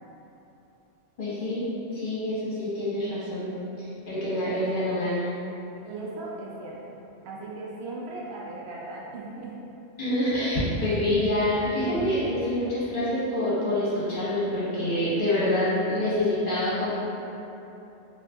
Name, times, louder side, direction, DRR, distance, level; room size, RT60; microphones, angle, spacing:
voice 1, 1.2-1.6 1.9-3.5 3.8-5.3 10.0-16.9, left 1 dB, 45° left, -10 dB, 1.0 m, -26 dB
voice 2, 5.8-7.0 7.2-9.6, right 2 dB, 65° right, -4 dB, 0.8 m, -37 dB
3.8 x 2.7 x 2.3 m, 3.0 s
omnidirectional pair, 1.3 m